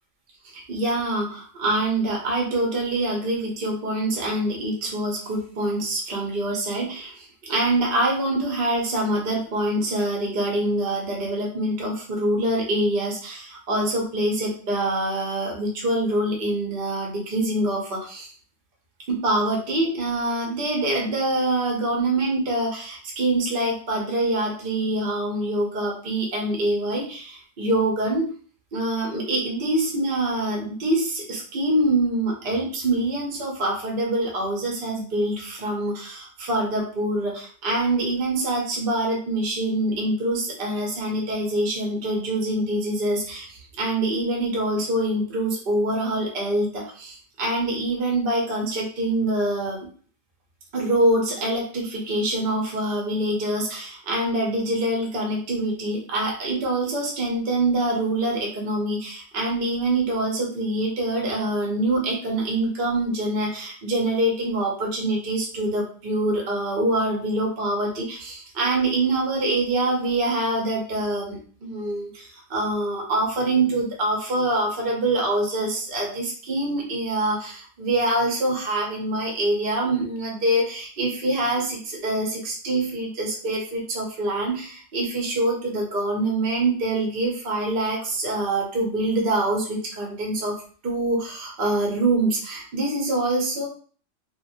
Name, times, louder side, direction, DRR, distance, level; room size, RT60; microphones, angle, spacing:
voice 1, 0.4-18.3 19.1-28.3 28.7-49.9 50.7-90.5 90.8-93.7, right 1 dB, 45° right, -1 dB, 0.9 m, -25 dB
2.9 x 2.5 x 2.6 m, 0.43 s
omnidirectional pair, 1.4 m